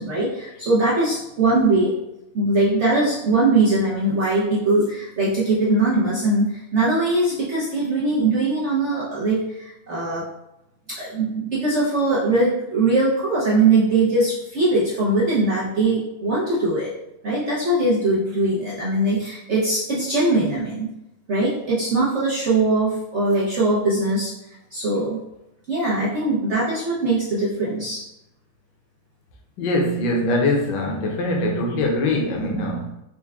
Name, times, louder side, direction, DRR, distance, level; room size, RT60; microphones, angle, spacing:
voice 1, 0.0-2.0 2.3-10.2 10.9-16.9 17.2-20.9 21.3-24.3 24.7-25.2 25.7-28.1, right 2 dB, 75° right, -7 dB, 0.6 m, -21 dB
voice 2, 29.6-32.9, left 1 dB, 65° left, 1 dB, 1.3 m, -22 dB
4.4 x 2.2 x 3.5 m, 0.87 s
omnidirectional pair, 2.2 m